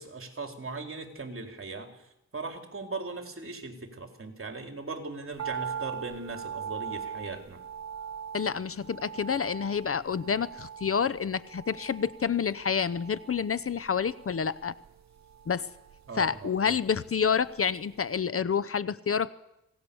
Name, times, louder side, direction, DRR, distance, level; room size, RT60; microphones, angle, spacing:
voice 1, 0.0-1.9 2.3-7.6 16.1-16.8, right 3 dB, 40° right, 4 dB, 4.2 m, -39 dB
sound 1, 5.4-17.7 17.9-18.0, right 7 dB, 60° right, 0.8 m, -41 dB
voice 2, 8.3-14.7 15.5-15.7 16.2-19.3, left 6 dB, 45° left, 16 dB, 0.8 m, -28 dB
25.5 x 18.0 x 7.1 m, 0.86 s
cardioid pair, 75°, 31 cm